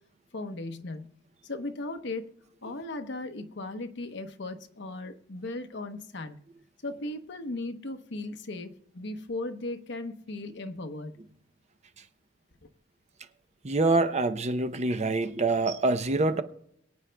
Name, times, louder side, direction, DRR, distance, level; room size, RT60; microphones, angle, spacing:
voice 1, 0.3-1.1 1.4-2.2 2.6-6.4 6.8-11.1, left 2 dB, 65° left, 0.9 m, -37 dB
voice 2, 13.6-16.4, right 2 dB, 35° right, 0.6 m, -25 dB
23.5 x 8.7 x 2.2 m
head